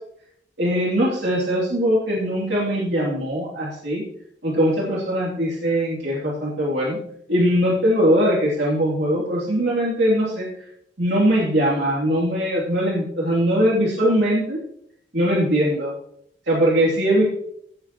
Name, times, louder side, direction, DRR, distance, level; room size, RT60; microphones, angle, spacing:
voice 1, 0.6-4.0 4.4-7.0 7.3-10.5 11.0-14.6 15.1-15.9 16.5-17.2, equal, 75° right, -5 dB, 3.0 m, -21 dB
16.5 x 8.0 x 3.0 m, 0.71 s
head